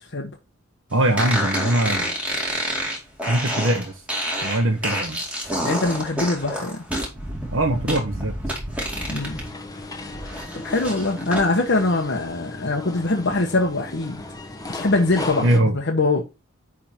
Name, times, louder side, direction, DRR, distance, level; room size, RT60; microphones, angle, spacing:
voice 1, 0.9-2.1 3.3-3.9 4.4-5.2 7.5-8.3 15.4-15.8, right 1 dB, 65° right, 1.1 m, -21 dB
sound 1, 1.2-9.5 9.8-11.5, equal, 5° right, 2.4 m, -28 dB
voice 2, 5.6-6.8 9.1-9.4 10.5-14.2 14.7-16.2, left 2 dB, 55° left, 1.1 m, -23 dB
sound 2, 8.9-15.6, left 2 dB, 15° left, 0.9 m, -36 dB
10.0 x 3.7 x 4.4 m
head